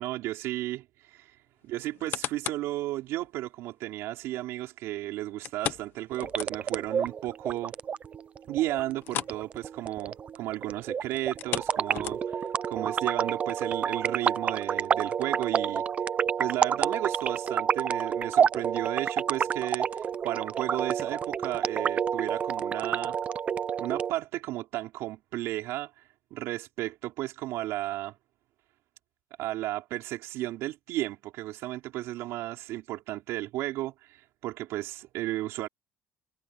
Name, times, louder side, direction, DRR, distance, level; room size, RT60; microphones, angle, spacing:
voice 1, 0.0-1.4 1.6-7.7 8.5-15.8 16.4-23.2 23.8-25.9 26.3-28.2 29.4-35.7, right 16 dB, 70° right, 4.4 m, -34 dB
sound 1, 1.8-2.7 3.2-3.3 5.4-6.9 7.2-7.3 7.8-7.9 9.0-9.4 9.7-9.9 11.2-12.5 13.1-13.2, left 11 dB, 50° left, 1.0 m, -36 dB
sound 2, 6.1-24.1, right 7 dB, 30° right, 0.5 m, -29 dB
cardioid pair, 155°, 5 cm